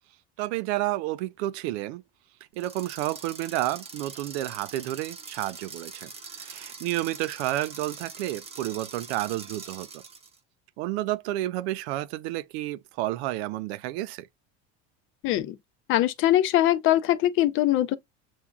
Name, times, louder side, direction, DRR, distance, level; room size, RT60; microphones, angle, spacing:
voice 1, 0.4-2.0 2.6-6.1 6.4-10.0 10.8-14.3, right 16 dB, 90° right, 0.5 m, -30 dB
sound 1, 2.5-10.4, right 5 dB, 20° right, 0.6 m, -43 dB
voice 2, 15.2-15.6 15.9-17.9, left 13 dB, 40° left, 0.4 m, -22 dB
7.1 x 2.6 x 2.3 m
cardioid pair, 150°, 32 cm